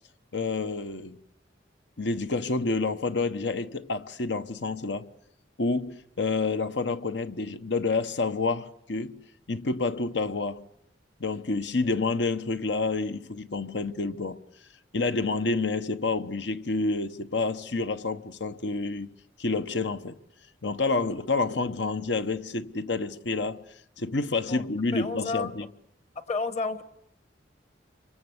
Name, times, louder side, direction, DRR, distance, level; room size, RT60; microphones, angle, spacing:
voice 1, 0.3-1.2 2.0-5.1 5.6-10.6 11.2-14.4 14.9-19.1 19.4-20.2 20.6-23.7 24.0-25.7, left 3 dB, 75° left, 1.1 m, -29 dB
voice 2, 24.9-25.5 26.3-26.8, left 4 dB, 40° left, 1.4 m, -30 dB
26.5 x 23.5 x 8.0 m
head